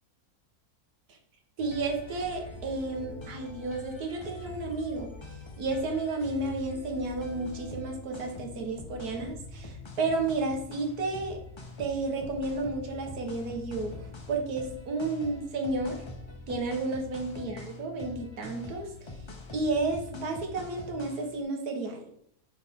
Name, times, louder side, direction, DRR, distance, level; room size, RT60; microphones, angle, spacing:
sound 1, 1.6-21.4, left 2 dB, 25° left, 0.6 m, -44 dB
voice 1, 1.6-5.1 5.6-11.4 11.8-16.0 16.5-18.9 19.5-22.0, right 3 dB, 80° right, 3 dB, 1.7 m, -32 dB
8.3 x 4.1 x 3.5 m, 0.67 s
omnidirectional pair, 1.6 m